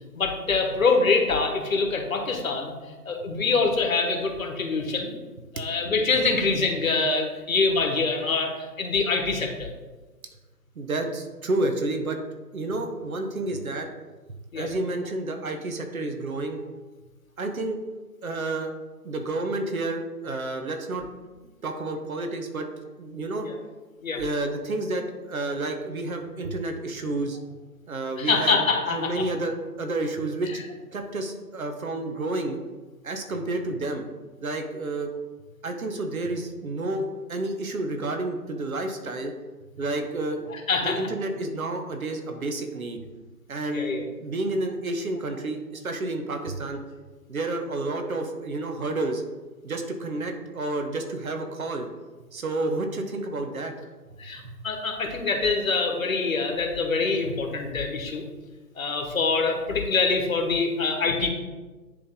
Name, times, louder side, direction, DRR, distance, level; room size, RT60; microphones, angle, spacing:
voice 1, 0.1-2.7 3.0-5.1 5.5-9.7 14.5-14.7 23.4-23.5 24.0-24.2 28.2-29.2 40.5-41.0 43.7-44.0 54.2-58.2 58.8-61.3, left 4 dB, 55° left, 3 dB, 1.3 m, -25 dB
voice 2, 10.8-12.2 12.5-13.9 14.5-16.6 17.4-17.8 18.2-18.7 19.0-21.1 21.6-22.7 23.0-23.5 24.1-27.4 27.9-28.6 28.9-30.6 30.9-32.6 33.0-34.1 34.4-35.1 35.6-39.3 39.7-40.5 40.8-43.0 43.5-43.9 44.2-46.8 47.3-49.2 49.6-51.9 52.3-53.7 54.4-54.5, right 2 dB, 60° right, 5 dB, 1.1 m, -30 dB
10.0 x 3.4 x 3.7 m, 1.3 s
figure-of-eight pair, 150°, 49 cm